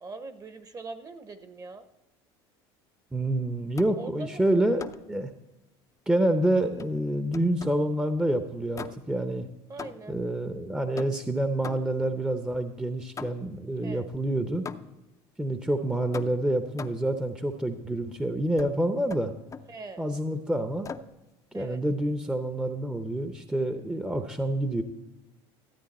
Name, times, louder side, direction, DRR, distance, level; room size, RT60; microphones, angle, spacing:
voice 1, 0.0-1.9 4.0-4.4 9.7-10.2 13.8-14.1 19.7-20.1 21.5-21.8, right 3 dB, 30° right, 11 dB, 1.0 m, -42 dB
voice 2, 3.1-5.3 6.1-9.5 10.1-14.6 15.4-19.3 20.0-20.9 21.5-24.8, right 1 dB, 5° right, 8 dB, 0.8 m, -27 dB
sound 1, 3.8-4.1 4.8-5.2 6.8-7.9 8.7-9.3 9.8-10.3 11.0-12.1 13.2-13.6 14.7-15.1 16.1-17.2 18.6-18.8 19.1-19.8 20.8-21.2, left 6 dB, 25° left, 0.6 m, -42 dB
13.5 x 8.7 x 4.3 m, 1.0 s
supercardioid pair, 95°, 13 cm